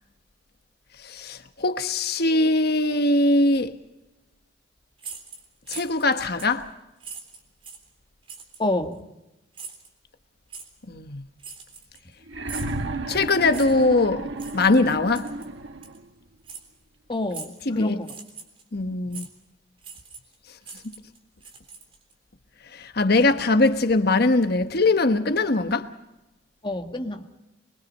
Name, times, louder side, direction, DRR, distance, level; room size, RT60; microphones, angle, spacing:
voice 1, 1.1-3.7 5.7-6.7 10.9-11.2 13.1-14.3 14.5-15.3 17.7-18.0 18.7-19.2 22.8-25.9, left 2 dB, 60° left, 1.2 m, -21 dB
sound 1, 5.0-6.1 6.4-6.6 7.0-7.9 8.3-8.6 9.5-9.9 10.5-10.7 11.4-12.1 12.5-12.8 13.5-13.9 14.4-14.6 15.1-15.5 15.8-16.0 16.4-16.7 17.3-17.6 18.0-18.6 19.1-19.3 19.8-20.3 20.6-22.1, right 5 dB, 30° right, 3.6 m, -41 dB
voice 2, 8.6-9.0 17.1-18.2 26.6-27.2, left 1 dB, 25° left, 1.8 m, -28 dB
sound 2, 12.3-16.1 17.3-17.4, right 2 dB, 80° right, 1.2 m, -33 dB
24.5 x 22.5 x 5.4 m
head